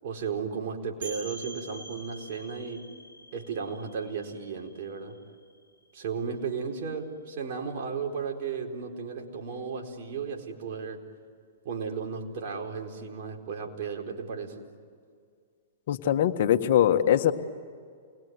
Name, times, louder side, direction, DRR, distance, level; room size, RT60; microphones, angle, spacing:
voice 1, 0.0-2.9 3.3-5.2 5.9-11.0 11.6-14.6, right 5 dB, 55° right, 1 dB, 4.5 m, -34 dB
sound 1, 1.0-6.5, right 2 dB, 80° right, 7.6 m, -47 dB
voice 2, 15.9-17.3, left 10 dB, 60° left, 8 dB, 1.6 m, -22 dB
28.5 x 21.5 x 9.6 m, 2.2 s
hypercardioid pair, 125°, 0 cm